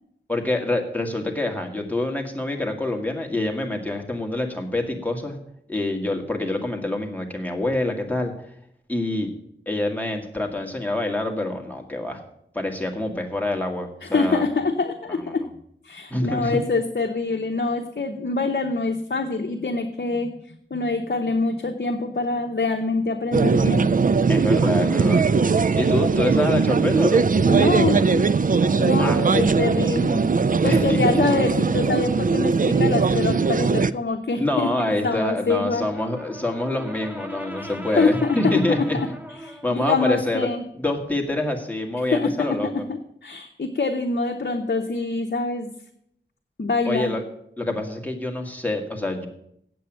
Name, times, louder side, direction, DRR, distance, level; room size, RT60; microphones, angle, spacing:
voice 1, 0.3-5.4 5.7-8.3 8.9-9.3 9.7-12.2 12.5-14.4 15.1-15.5 16.1-16.6 24.3-25.2 25.8-27.2 29.0-29.5 30.6-31.0 33.0-33.2 34.3-39.0 39.6-40.5 40.8-42.8 46.9-47.2 47.6-49.3, left 1 dB, 10° left, 1 dB, 2.0 m, -26 dB
voice 2, 14.0-15.4 15.8-23.9 27.5-28.4 28.8-34.7 35.0-35.9 37.6-39.1 39.4-40.6 42.1-42.6 42.9-45.7 46.6-47.2, left 3 dB, 60° left, 4 dB, 0.9 m, -25 dB
sound 1, 23.3-33.9, right 4 dB, 45° right, 0.4 m, -20 dB
Brass instrument, 35.6-39.8, equal, 10° right, 0.8 m, -38 dB
8.4 x 7.8 x 8.9 m, 0.73 s
wide cardioid pair, 70°, 19 cm